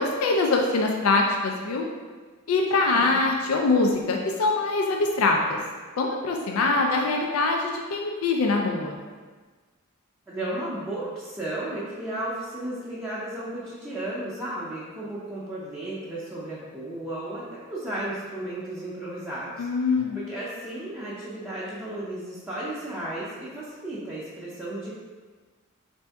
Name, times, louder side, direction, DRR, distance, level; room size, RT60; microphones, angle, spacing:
voice 1, 0.0-1.9 2.5-5.6 6.0-8.9 19.6-20.2, left 3 dB, 75° left, 1 dB, 0.4 m, -23 dB
voice 2, 2.9-3.2 10.3-24.9, right 1 dB, 10° right, -9 dB, 0.6 m, -34 dB
4.3 x 2.6 x 3.4 m, 1.4 s
head